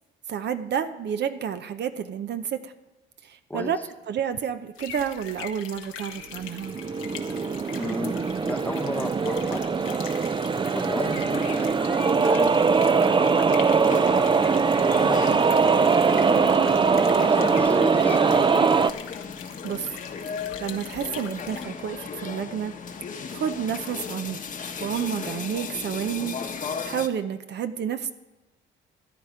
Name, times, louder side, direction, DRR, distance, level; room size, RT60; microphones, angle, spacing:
voice 1, 0.3-2.7 3.2-3.8 4.1-6.8 19.6-19.9 20.3-22.7 23.3-24.4 24.8-26.4 26.8-28.1, right 8 dB, 60° right, 10 dB, 0.7 m, -30 dB
sound 1, 4.8-21.7, left 8 dB, 90° left, 1.2 m, -42 dB
sound 2, 6.4-18.9, right 5 dB, 25° right, 0.5 m, -21 dB
voice 2, 7.7-10.0 10.7-12.6 12.8-14.3 14.9-15.7 16.0-16.6 17.2-18.4, left 1 dB, 10° left, 6 dB, 1.1 m, -35 dB
sound 3, 13.9-27.1, left 6 dB, 40° left, 1.1 m, -36 dB
13.5 x 9.6 x 5.0 m, 1.1 s
cardioid pair, 90°, 20 cm